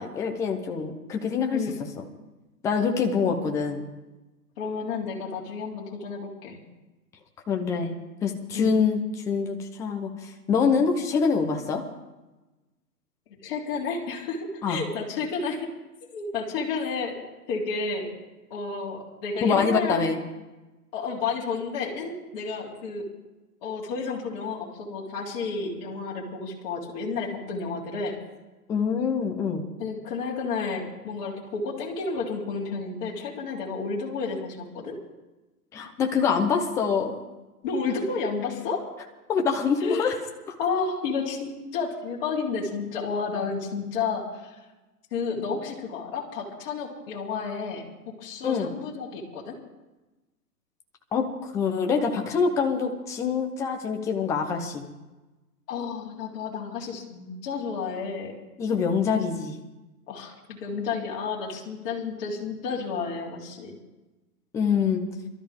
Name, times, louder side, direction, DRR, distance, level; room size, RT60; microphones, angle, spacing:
voice 1, 0.0-1.6 2.6-3.8 7.5-7.9 8.2-11.8 14.6-14.8 19.4-20.2 28.7-29.6 35.7-37.1 39.3-40.1 48.4-48.7 51.1-51.3 51.5-54.8 58.6-59.5 64.5-65.0, left 5 dB, 5° left, 3 dB, 0.7 m, -25 dB
voice 2, 4.6-6.6 8.5-8.8 13.4-15.7 16.1-17.2 17.5-18.1 18.5-20.1 20.9-23.1 23.6-28.2 29.8-35.0 37.6-38.8 39.8-40.1 40.6-44.6 45.1-47.8 48.2-49.6 55.7-58.4 60.1-63.8, left 4 dB, 35° left, -4 dB, 3.8 m, -31 dB
27.5 x 13.0 x 3.7 m, 1.1 s
hypercardioid pair, 145°, 48 cm